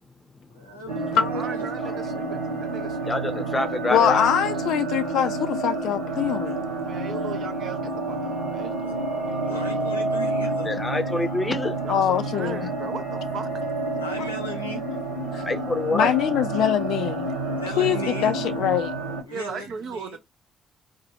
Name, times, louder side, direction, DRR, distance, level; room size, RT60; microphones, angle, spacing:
voice 1, 0.5-2.1 9.5-10.7 14.0-14.8 17.5-18.6 19.2-20.2, right 1 dB, 90° left, 0.7 m, -37 dB
sound 1, 0.9-19.2, right 2 dB, 85° right, 0.9 m, -29 dB
voice 2, 1.1-3.4 6.8-9.9 11.8-13.5 19.3-20.2, right 5 dB, 55° right, 0.5 m, -38 dB
voice 3, 3.1-4.3 9.1-9.2 10.6-11.8 15.5-16.1, left 2 dB, 25° left, 0.6 m, -26 dB
voice 4, 3.9-6.6 11.9-12.6 15.9-17.3 17.8-18.9, left 10 dB, 60° left, 0.3 m, -23 dB
2.6 x 2.3 x 2.7 m
figure-of-eight pair, 45°, 0 cm